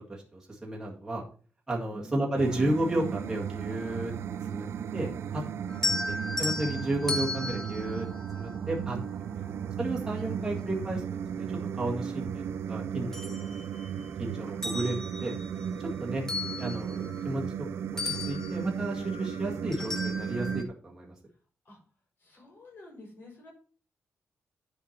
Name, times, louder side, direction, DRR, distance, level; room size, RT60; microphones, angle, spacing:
voice 1, 0.3-1.2 1.7-4.1 4.5-4.7 4.9-5.4 6.1-8.1 8.3-9.0 9.4-9.5 9.8-11.5 11.7-13.9 14.2-15.3 16.0-16.2 16.6-17.4 17.9-21.1, right 1 dB, 10° right, -3 dB, 2.0 m, -33 dB
voice 2, 1.9-2.3 5.8-6.5 9.5-9.6 10.3-10.7 21.6-21.8 22.2-23.5, left 1 dB, 45° left, 0 dB, 4.7 m, -50 dB
sound 1, 2.4-20.6, right 8 dB, 70° right, 0.5 m, -35 dB
sound 2, 5.7-9.0 10.7-10.8 11.3-12.5 12.9-14.1 14.5-17.7 18.0-20.6, left 2 dB, 10° left, 0.9 m, -36 dB
9.7 x 4.6 x 5.9 m, 0.40 s
wide cardioid pair, 180°, 5 cm